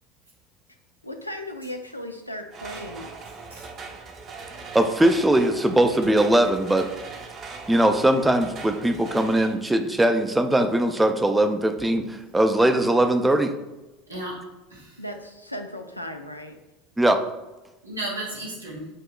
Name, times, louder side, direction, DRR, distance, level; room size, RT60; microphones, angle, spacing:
voice 1, 1.0-3.1 14.1-14.2 15.0-16.6, left 1 dB, 90° left, 5 dB, 0.4 m, -36 dB
sound 1, 2.5-9.5, right 4 dB, 35° right, 0.7 m, -40 dB
voice 2, 4.7-6.9 7.7-13.5 17.0-17.2, right 1 dB, 10° right, 7 dB, 0.4 m, -20 dB
voice 3, 14.1-14.4 14.7-15.0 17.8-18.9, right 1 dB, 85° right, -4 dB, 1.2 m, -34 dB
7.4 x 2.8 x 2.3 m, 1.1 s
figure-of-eight pair, 75°, 0 cm